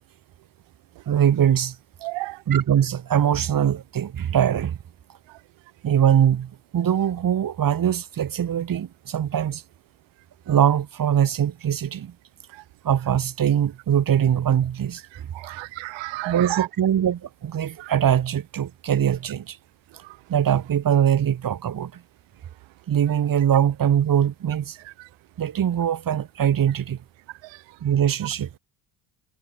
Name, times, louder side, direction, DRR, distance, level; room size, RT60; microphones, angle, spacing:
voice 1, 1.1-1.8 2.5-4.8 5.8-9.6 10.5-12.1 12.8-15.3 16.2-19.6 20.3-22.0 22.9-24.8 25.4-27.0 27.8-28.6, right 9 dB, 40° right, 4.6 m, -22 dB
voice 2, 2.0-2.4 15.3-16.7 17.8-17.9, right 21 dB, 60° right, 4.6 m, -31 dB
hypercardioid pair, 65°, 50 cm